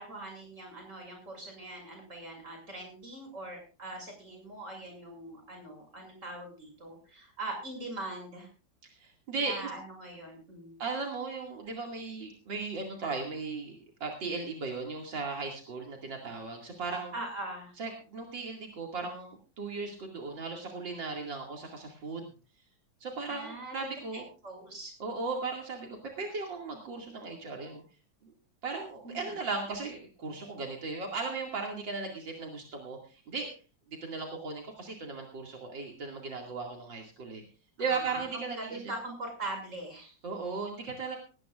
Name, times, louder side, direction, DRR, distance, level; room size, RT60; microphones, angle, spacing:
voice 1, 0.0-8.5 9.4-10.7 17.1-17.7 23.3-23.9 24.4-24.9 29.0-29.4 37.8-40.1, right 2 dB, 40° right, 2 dB, 7.2 m, -42 dB
voice 2, 8.8-9.7 10.8-17.1 17.8-22.3 23.0-24.2 25.0-27.8 28.2-28.3 28.6-33.5 34.0-37.4 37.8-38.8 40.2-41.2, right 4 dB, 80° right, 1 dB, 3.1 m, -37 dB
18.5 x 18.0 x 2.5 m, 0.36 s
omnidirectional pair, 2.0 m